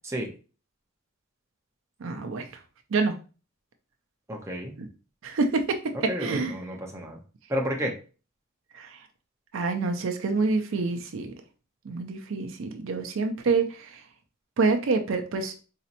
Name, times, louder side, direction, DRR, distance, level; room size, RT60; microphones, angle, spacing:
voice 1, 2.0-2.5 2.9-3.2 4.8-4.9 5.2-6.6 8.7-9.0 9.5-11.3 11.9-14.0 14.6-15.5, right 4 dB, 65° right, 6 dB, 0.4 m, -27 dB
voice 2, 4.3-4.7 5.9-7.2 7.5-7.9, equal, 15° right, 0 dB, 0.6 m, -31 dB
4.0 x 2.8 x 2.5 m, 0.35 s
head